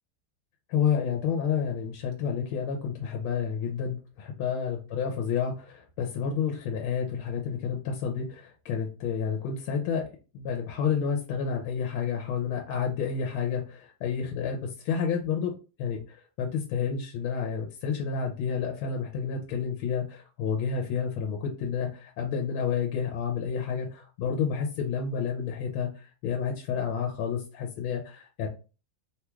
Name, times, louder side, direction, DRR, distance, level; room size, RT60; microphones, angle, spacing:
voice 1, 0.7-10.1 10.3-15.5 15.8-28.5, left 7 dB, 85° left, 1 dB, 1.5 m, -30 dB
3.6 x 2.3 x 3.0 m, 0.33 s
omnidirectional pair, 2.2 m